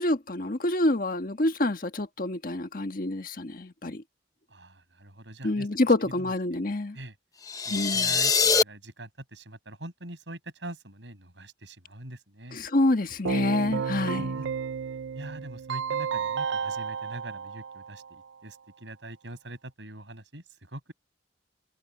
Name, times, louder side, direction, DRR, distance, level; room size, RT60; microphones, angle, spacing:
voice 1, 0.0-4.0 5.4-7.0 7.7-8.2 12.5-14.4, left 2 dB, 50° left, 1.5 m, -27 dB
voice 2, 4.5-5.7 6.2-6.6 6.9-7.1 7.7-12.6 14.2-14.5 15.1-20.9, right 1 dB, 75° right, 7.8 m, -43 dB
sound 1, 7.4-8.6, left 5 dB, 20° left, 0.8 m, -23 dB
Keyboard (musical), 13.3-18.2, right 6 dB, 90° right, 0.5 m, -32 dB
head